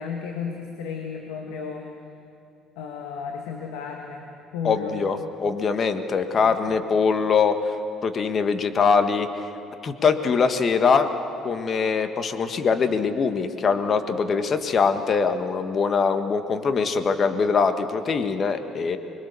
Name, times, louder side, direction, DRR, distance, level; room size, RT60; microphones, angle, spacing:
voice 1, 0.0-1.9 2.8-4.3 4.5-5.0 6.4-6.8, left 6 dB, 75° left, 1 dB, 1.9 m, -34 dB
voice 2, 4.6-7.7 8.0-9.4 9.8-11.1 11.4-19.0, left 5 dB, 45° left, 8 dB, 1.6 m, -22 dB
25.0 x 21.5 x 7.0 m, 2.7 s
hypercardioid pair, 60°, 0 cm